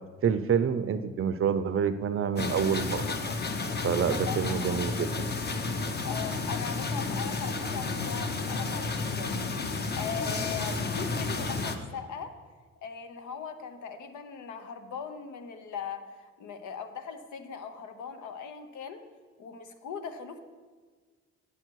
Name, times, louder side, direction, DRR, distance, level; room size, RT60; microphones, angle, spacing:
voice 1, 0.2-3.1 3.8-5.1 11.0-11.1, right 7 dB, 45° right, 10 dB, 0.6 m, -27 dB
sound 1, 2.4-11.8, left 3 dB, 35° left, 0.8 m, -32 dB
voice 2, 4.1-4.8 6.0-9.4 10.0-12.4 12.8-19.0 19.4-20.4, left 6 dB, 75° left, 8 dB, 0.9 m, -39 dB
9.0 x 7.1 x 4.6 m, 1.4 s
cardioid pair, 90°, 30 cm